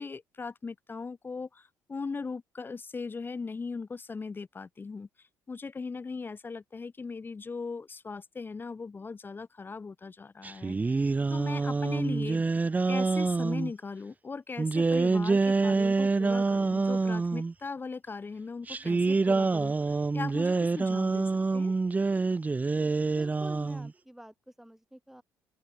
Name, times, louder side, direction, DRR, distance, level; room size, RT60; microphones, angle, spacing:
voice 1, 0.0-11.0 11.3-12.4 12.9-21.7, left 4 dB, 30° left, 1.0 m, -39 dB
sound 1, 10.4-13.7 14.6-17.5 18.7-23.9, right 3 dB, 20° right, 0.6 m, -27 dB
voice 2, 23.1-25.2, right 1 dB, 5° right, 7.4 m, -48 dB
open air
supercardioid pair, 65°, 7 cm